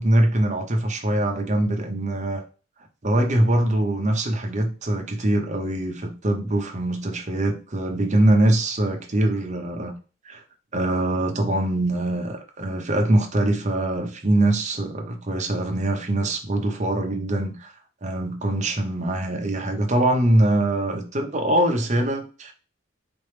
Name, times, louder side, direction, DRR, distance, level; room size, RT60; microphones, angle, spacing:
voice 1, 0.0-2.4 3.0-9.9 10.2-10.4 10.7-17.7 18.0-22.5, right 1 dB, 40° right, 0.9 m, -23 dB
4.3 x 3.1 x 3.3 m
head